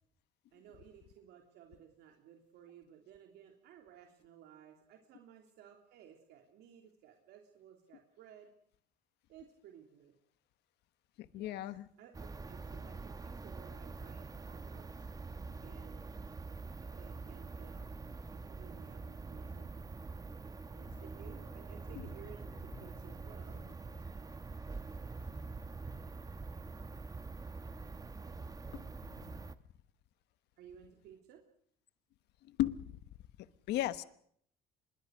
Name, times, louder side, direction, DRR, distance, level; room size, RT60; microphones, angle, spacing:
voice 1, 0.5-8.5 9.3-10.2 11.3-11.7 12.0-15.1 15.6-16.2 16.8-18.0 18.3-19.7 20.7-23.7 30.6-31.4, right 9 dB, 80° right, 3.3 m, -57 dB
voice 2, 11.3-11.9 32.6-32.8 33.7-34.0, left 14 dB, 80° left, 1.2 m, -33 dB
sound 1, 12.1-29.5, right 4 dB, 20° right, 1.2 m, -45 dB
25.5 x 22.5 x 6.5 m
cardioid pair, 110°, 17 cm